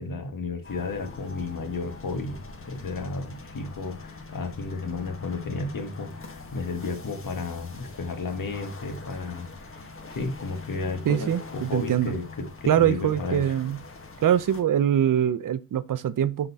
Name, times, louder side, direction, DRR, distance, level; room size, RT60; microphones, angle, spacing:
voice 1, 0.0-13.6, left 3 dB, 85° left, 1.4 m, -33 dB
sound 1, 0.6-14.6, left 3 dB, 40° left, 1.1 m, -43 dB
voice 2, 11.1-12.1 12.7-13.8 14.2-16.5, right 10 dB, 75° right, 0.5 m, -23 dB
6.1 x 3.8 x 4.0 m
wide cardioid pair, 135°, 33 cm